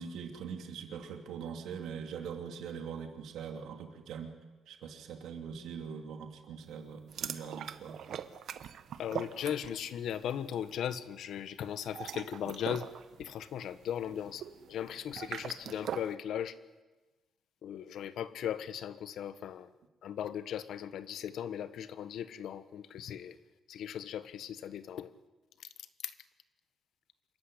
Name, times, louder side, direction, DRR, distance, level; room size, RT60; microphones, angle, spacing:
voice 1, 0.0-4.4 4.7-8.0, right 6 dB, 75° right, 4 dB, 2.8 m, -42 dB
sound 1, 7.1-10.0 10.3-10.6 11.8-16.1, right 9 dB, 55° right, 1.1 m, -42 dB
voice 2, 9.0-12.9 13.2-16.6 17.6-19.7 20.0-23.4 23.7-25.1 26.0-26.1, left 9 dB, 65° left, 13 dB, 1.2 m, -38 dB
27.0 x 15.0 x 9.9 m, 1.2 s
cardioid pair, 170°, 0 cm